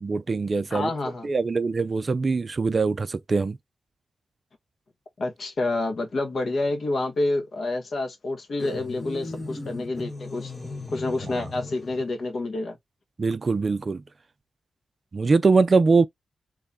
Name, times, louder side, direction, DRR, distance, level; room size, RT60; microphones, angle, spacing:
voice 1, 0.0-0.9 1.2-3.6 11.2-11.3 13.2-14.0 15.1-16.1, right 4 dB, 35° right, 0.4 m, -22 dB
voice 2, 0.7-1.3 5.2-10.5 10.9-12.8, left 2 dB, 50° left, 1.4 m, -28 dB
sound 1, 8.6-12.1, left 3 dB, 15° left, 1.2 m, -36 dB
4.1 x 3.1 x 3.5 m
wide cardioid pair, 140°, 0 cm